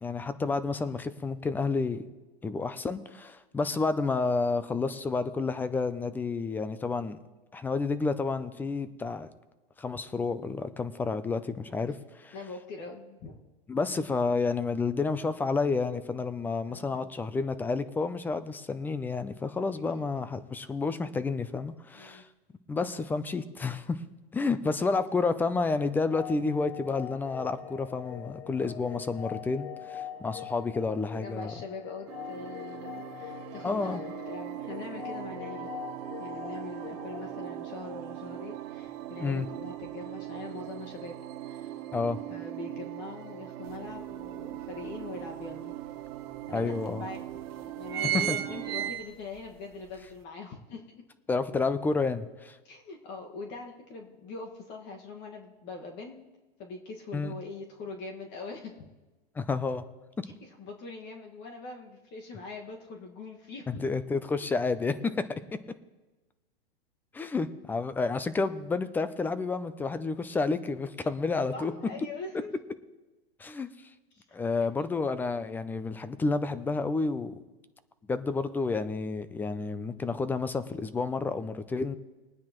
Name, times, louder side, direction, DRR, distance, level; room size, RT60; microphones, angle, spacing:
voice 1, 0.0-2.0 2.4-7.2 7.5-9.3 9.8-12.3 13.7-22.3 22.7-24.0 24.3-31.5 33.6-34.0 39.2-39.5 41.9-42.2 46.5-47.0 48.1-48.4 51.3-52.6 57.1-57.3 59.4-59.8 60.2-60.3 63.8-65.4 67.1-71.7 73.4-73.7 74.3-77.4 78.1-81.9, left 4 dB, 5° left, 13 dB, 0.4 m, -30 dB
voice 2, 12.3-13.4 16.7-17.1 19.9-20.1 21.9-22.2 28.6-28.9 31.2-35.7 36.2-41.7 42.3-45.7 46.5-47.3 47.7-50.8 52.6-56.2 56.6-58.8 60.4-63.8 64.3-64.4 71.0-71.1 71.5-72.5 74.1-74.2 74.8-74.9, left 3 dB, 35° left, 2 dB, 1.7 m, -42 dB
sound 1, 25.7-38.5, left 10 dB, 80° left, 1.0 m, -43 dB
sound 2, 32.1-48.9, right 14 dB, 40° right, 0.9 m, -41 dB
sound 3, 43.7-43.8 44.2-45.4 46.1-46.2 46.4-46.5 47.2-47.4 47.6-49.5 49.9-50.0, right 11 dB, 70° right, 1.1 m, -32 dB
21.5 x 9.5 x 3.0 m, 1.2 s
hypercardioid pair, 125°, 31 cm